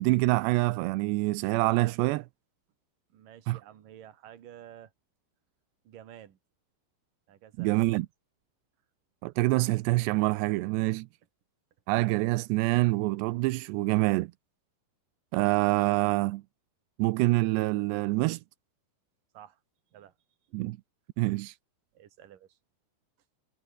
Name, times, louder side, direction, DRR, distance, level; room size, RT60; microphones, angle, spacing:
voice 1, 0.0-2.3 3.5-3.6 7.6-8.1 9.2-11.0 11.9-14.3 15.3-16.4 17.0-18.4 20.5-20.8 21.2-21.5, right 20 dB, 85° right, 2.4 m, -26 dB
voice 2, 3.1-4.9 5.8-6.4 7.3-7.9 10.6-10.9 19.3-19.6 19.9-20.2 21.9-22.6, right 11 dB, 50° right, 3.1 m, -51 dB
omnidirectional pair, 5.7 m